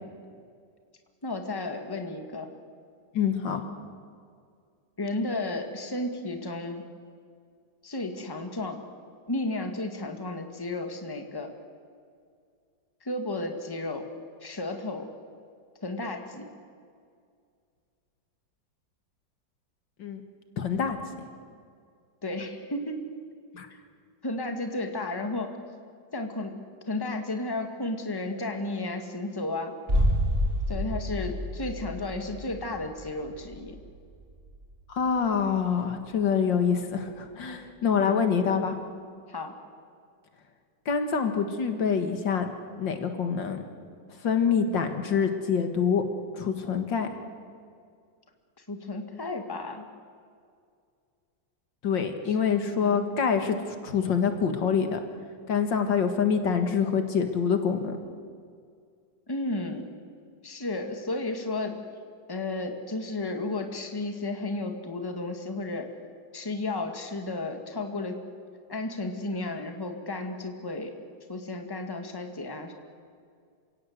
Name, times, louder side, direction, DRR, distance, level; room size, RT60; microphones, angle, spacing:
voice 1, 1.2-2.5 5.0-6.8 7.8-8.8 9.3-11.5 13.0-14.1 14.4-15.1 15.8-16.5 22.2-23.1 24.2-25.5 26.1-26.5 26.9-29.7 30.7-33.8 38.0-38.2 39.3-39.6 48.7-49.8 52.3-52.4 52.8-53.0 59.3-59.8 60.4-61.8 62.3-65.9 66.3-68.2 68.7-70.9 71.3-72.7, left 2 dB, 10° left, 5 dB, 1.8 m, -33 dB
voice 2, 3.1-3.6 20.0-20.2 20.6-21.0 23.5-23.7 34.9-38.8 40.9-42.5 42.8-43.6 44.2-46.0 46.4-47.1 51.8-53.6 53.8-55.0 55.5-58.0, left 6 dB, 75° left, 7 dB, 2.4 m, -26 dB
sound 1, 29.9-35.6 35.9-36.0, equal, 30° right, 4.8 m, -30 dB
28.0 x 17.0 x 8.0 m, 2.2 s
omnidirectional pair, 2.0 m